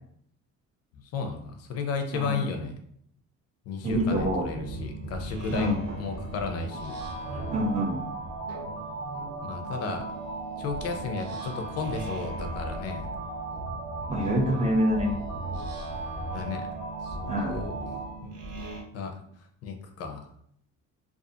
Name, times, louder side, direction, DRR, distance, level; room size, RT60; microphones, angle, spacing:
voice 1, 1.1-2.7 3.7-7.0 9.4-10.1 10.6-13.1 16.3-16.7 17.0-17.7 18.2-18.3 18.9-19.2 19.6-20.3, left 5 dB, 55° left, 5 dB, 0.4 m, -33 dB
voice 2, 3.8-4.5 5.5-5.8 7.5-8.0 14.1-15.1 17.3-17.6, equal, 25° right, -1 dB, 0.3 m, -26 dB
sound 1, 3.9-18.8, right 2 dB, 55° right, 0.8 m, -39 dB
sound 2, 6.7-18.1, right 3 dB, 10° left, 0.7 m, -38 dB
2.6 x 2.3 x 2.4 m, 0.67 s
cardioid pair, 165°, 30 cm